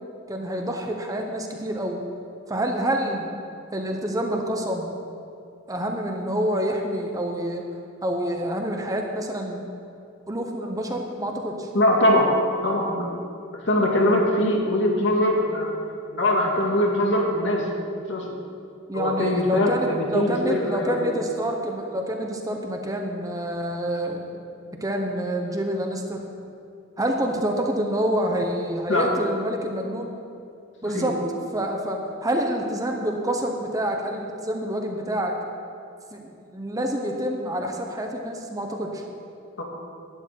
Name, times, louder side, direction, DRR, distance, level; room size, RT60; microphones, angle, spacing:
voice 1, 0.3-2.0 2.5-3.3 3.7-4.9 5.7-7.6 8.0-9.6 10.3-11.7 18.9-24.2 24.8-26.2 27.0-30.1 30.8-31.2 31.5-35.3 36.1-39.0, right 1 dB, 15° right, 2 dB, 1.1 m, -27 dB
voice 2, 11.7-12.3 12.6-13.1 13.6-15.7 16.1-17.6 18.1-18.2 18.9-21.0 28.9-29.1 30.9-31.1 39.6-39.7, left 1 dB, 65° left, -1 dB, 2.2 m, -22 dB
12.0 x 7.0 x 9.3 m, 2.5 s
head